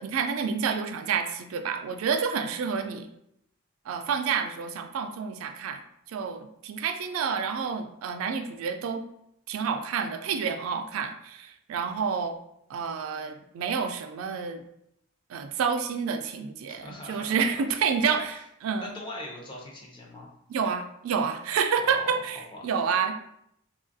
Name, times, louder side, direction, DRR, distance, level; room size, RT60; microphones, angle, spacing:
voice 1, 0.0-3.1 3.9-5.8 6.1-9.0 9.5-12.4 12.7-14.6 15.3-18.3 18.6-18.9 20.5-23.1, right 6 dB, 80° right, 8 dB, 0.3 m, -29 dB
voice 2, 16.7-18.2 18.8-20.3 21.8-22.2 22.5-22.6, left 1 dB, 25° left, -1 dB, 0.5 m, -41 dB
3.1 x 2.3 x 2.6 m, 0.75 s
head